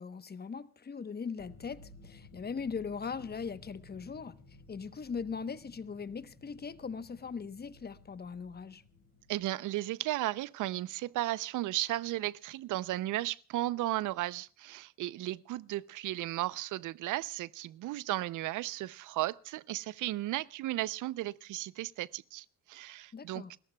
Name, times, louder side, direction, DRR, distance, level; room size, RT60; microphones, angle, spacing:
voice 1, 0.0-4.3 4.7-8.8 23.1-23.5, left 5 dB, 35° left, 1.0 m, -40 dB
sound 1, 1.4-9.5, left 3 dB, 60° left, 5.5 m, -56 dB
voice 2, 9.3-23.4, right 16 dB, 85° right, 0.6 m, -35 dB
29.0 x 14.0 x 2.3 m
cardioid pair, 90°, 30 cm